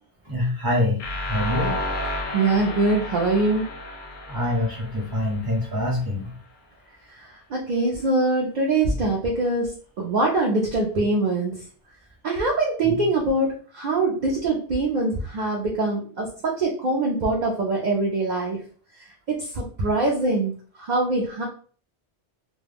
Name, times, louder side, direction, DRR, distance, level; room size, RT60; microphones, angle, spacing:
voice 1, 0.2-1.8 4.3-6.3 12.8-13.0, left 1 dB, 20° right, -3 dB, 0.9 m, -25 dB
sound 1, 1.0-5.9, left 1 dB, 60° left, 0.6 m, -32 dB
voice 2, 2.3-3.7 7.5-11.5 12.2-18.6 19.3-20.5 20.9-21.4, right 2 dB, 55° right, -1 dB, 0.5 m, -23 dB
2.2 x 2.1 x 3.3 m, 0.43 s
omnidirectional pair, 1.2 m